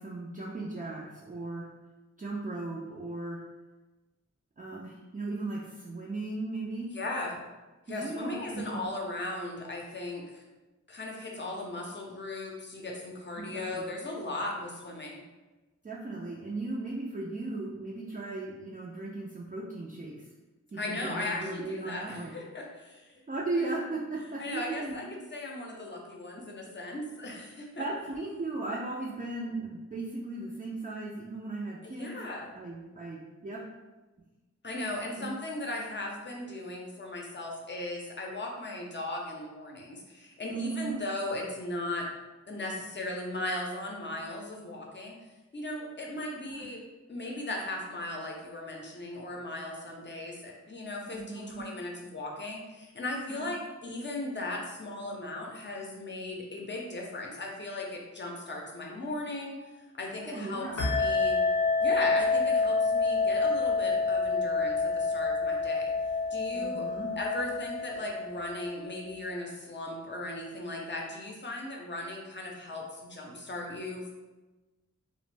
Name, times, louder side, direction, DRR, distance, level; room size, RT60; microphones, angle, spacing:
voice 1, 0.0-1.7 2.2-3.4 4.6-6.9 7.9-8.9 13.4-13.8 15.8-20.3 20.7-22.4 23.3-25.0 27.8-32.2 32.5-33.6 35.2-35.3 40.5-41.0 46.4-46.7 51.1-51.6 53.3-53.5 60.2-60.8 66.5-67.1, right 2 dB, 30° right, -5 dB, 0.4 m, -37 dB
voice 2, 6.9-7.4 7.9-10.4 10.9-15.2 20.8-23.2 23.6-23.7 24.4-27.8 31.8-32.5 34.6-42.1 42.5-45.2 45.5-46.8 47.1-59.6 60.0-61.4 61.8-65.9 66.3-66.9 67.2-74.1, left 2 dB, 40° left, -1 dB, 0.6 m, -37 dB
sound 1, 60.8-68.9, left 4 dB, 75° left, 0.6 m, -28 dB
2.5 x 2.0 x 3.2 m, 1.1 s
wide cardioid pair, 65°, 30 cm